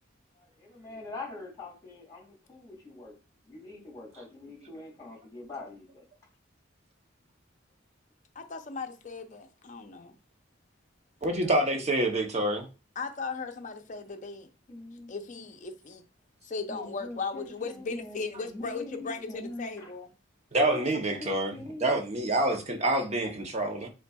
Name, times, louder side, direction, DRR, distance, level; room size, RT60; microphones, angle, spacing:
voice 1, 0.3-3.2 3.5-6.0 11.2-11.9 14.7-15.1 16.7-19.9 20.6-22.0, left 2 dB, 20° left, 2.2 m, -43 dB
voice 2, 8.3-10.2 13.0-14.5 15.1-16.0 16.4-20.1, left 4 dB, 40° left, 0.6 m, -37 dB
voice 3, 11.2-12.7 20.5-23.9, right 1 dB, 35° right, 0.7 m, -27 dB
5.3 x 3.8 x 2.3 m
head